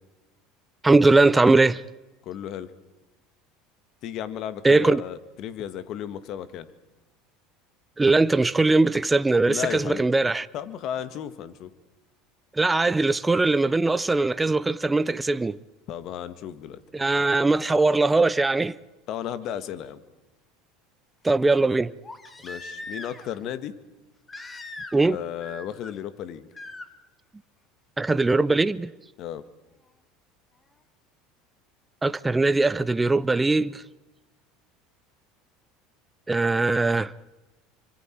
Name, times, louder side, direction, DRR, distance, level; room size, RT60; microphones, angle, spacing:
voice 1, 0.8-1.8 4.6-5.0 8.0-10.5 12.5-15.6 16.9-18.8 21.2-21.9 24.9-25.2 28.0-28.9 32.0-33.8 36.3-37.1, right 3 dB, 15° right, 0.7 m, -20 dB
voice 2, 2.2-2.7 4.0-6.7 9.4-10.1 10.5-11.7 15.9-16.8 19.1-20.0 22.4-23.7 25.0-26.5 29.2-29.5, left 10 dB, 55° left, 1.8 m, -34 dB
Crying sobbing, 22.0-23.4 24.3-25.1 25.4-25.9 26.5-26.9 28.5-28.6, left 2 dB, 20° left, 2.6 m, -40 dB
27.5 x 25.5 x 4.6 m
hypercardioid pair, 85°, 0 cm